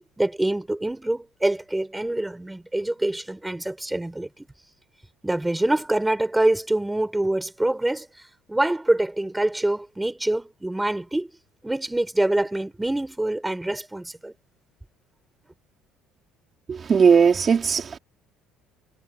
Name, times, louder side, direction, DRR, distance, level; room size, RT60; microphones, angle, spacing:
voice 1, 0.0-4.3 5.2-8.1 8.5-11.3 11.6-14.3, right 1 dB, 5° right, 4.4 m, -25 dB
voice 2, 16.7-18.0, right 6 dB, 25° right, 3.9 m, -18 dB
cardioid pair, 160°, 0 cm